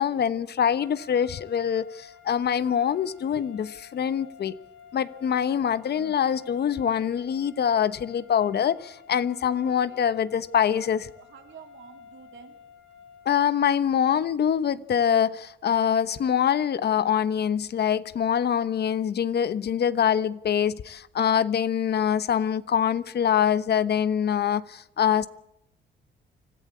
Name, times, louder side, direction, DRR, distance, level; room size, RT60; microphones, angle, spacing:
voice 1, 0.0-4.6 4.9-11.1 13.2-25.3, left 8 dB, 55° left, 1.1 m, -24 dB
sound 1, 0.8-13.6, left 7 dB, 80° left, 3.9 m, -51 dB
voice 2, 11.2-12.6, right 8 dB, 75° right, 2.9 m, -48 dB
25.5 x 15.0 x 8.5 m
cardioid pair, 90°, 20 cm